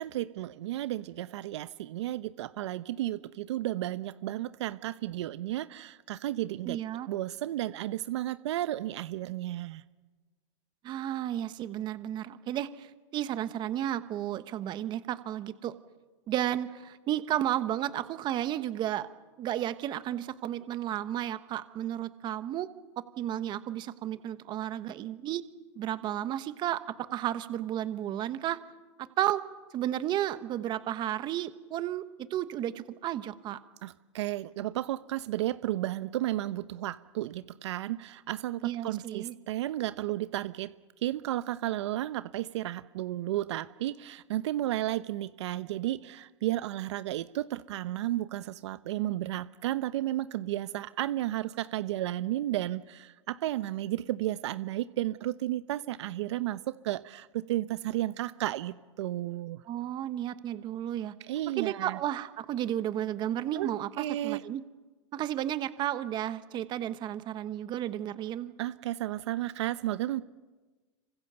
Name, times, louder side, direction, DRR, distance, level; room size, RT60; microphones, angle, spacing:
voice 1, 0.0-6.8 7.1-9.8 33.8-40.7 41.0-59.6 61.3-62.0 63.5-63.7 64.0-64.4 68.6-70.2, right 14 dB, 65° right, 14 dB, 0.8 m, -33 dB
voice 2, 6.6-7.1 10.8-15.7 16.3-19.1 19.4-22.7 23.2-25.4 25.8-26.8 27.1-28.6 29.0-29.4 29.7-32.0 32.3-33.6 38.6-39.3 59.7-61.1 61.6-64.6 65.1-68.5, right 12 dB, 30° right, 13 dB, 1.2 m, -33 dB
26.5 x 24.5 x 6.9 m, 1.3 s
hypercardioid pair, 140°, 16 cm